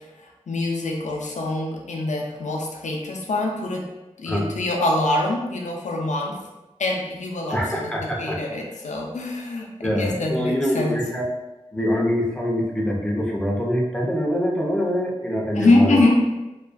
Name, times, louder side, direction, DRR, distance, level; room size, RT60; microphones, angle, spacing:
voice 1, 0.5-3.8 4.2-6.4 6.8-11.0 15.6-16.3, left 2 dB, 80° left, 0 dB, 0.4 m, -24 dB
voice 2, 7.5-8.4 9.8-11.3 11.7-16.0, equal, 5° left, -2 dB, 0.5 m, -24 dB
2.3 x 2.2 x 2.4 m, 1.0 s
wide cardioid pair, 55°, 12 cm